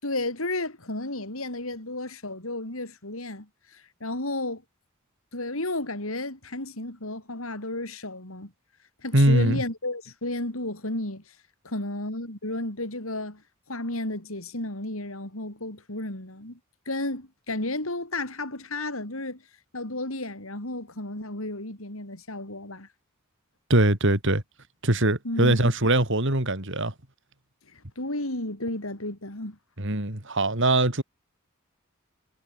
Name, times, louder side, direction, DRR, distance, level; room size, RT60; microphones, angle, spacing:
voice 1, 0.0-4.6 5.3-8.5 9.0-11.4 11.6-16.6 16.9-19.4 19.7-22.9 25.2-25.7 27.7-29.6, left 2 dB, 75° left, 6.0 m, -33 dB
voice 2, 9.1-9.6 23.7-24.4 24.8-26.9 29.8-31.0, right 1 dB, 60° right, 4.5 m, -22 dB
head